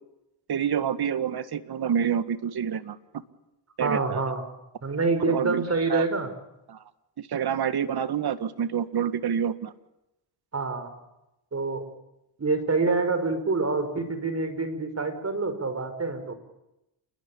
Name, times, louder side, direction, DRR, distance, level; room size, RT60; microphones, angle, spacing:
voice 1, 0.5-3.0 3.8-4.2 5.3-5.6 5.9-6.1 6.7-6.8 7.2-9.7, right 8 dB, 50° right, 12 dB, 1.9 m, -27 dB
voice 2, 3.8-4.4 4.8-6.3 10.5-10.9 11.5-11.8 12.4-16.3, right 3 dB, 30° right, 10 dB, 5.5 m, -26 dB
29.0 x 21.5 x 8.7 m, 0.90 s
cardioid pair, 90°, 48 cm